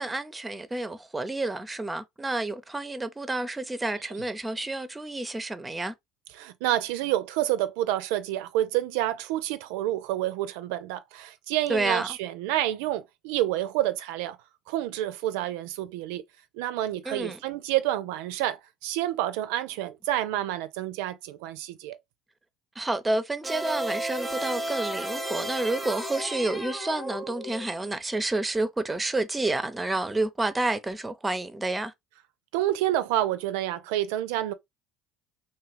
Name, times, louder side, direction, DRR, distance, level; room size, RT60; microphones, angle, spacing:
voice 1, 0.0-5.9 11.7-12.1 17.1-17.4 22.8-31.9, right 2 dB, 15° right, 0.5 m, -29 dB
voice 2, 6.4-14.4 14.7-16.2 16.5-22.0 32.5-34.5, right 14 dB, 75° right, 0.4 m, -28 dB
sound 1, 23.4-27.8, right 1 dB, 5° left, 0.9 m, -33 dB
2.7 x 2.4 x 3.1 m
hypercardioid pair, 65°, 0 cm